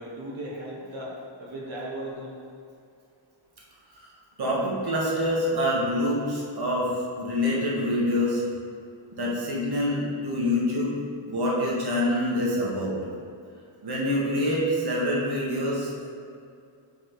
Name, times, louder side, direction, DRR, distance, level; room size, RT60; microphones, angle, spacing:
voice 1, 0.0-2.3, right 1 dB, 70° right, -5 dB, 1.5 m, -37 dB
voice 2, 4.4-6.9 7.2-8.4 9.1-11.0 11.2-13.0 13.8-16.1, left 1 dB, 50° right, -4 dB, 1.6 m, -26 dB
7.3 x 4.9 x 4.8 m, 2.4 s
wide cardioid pair, 160°, 47 cm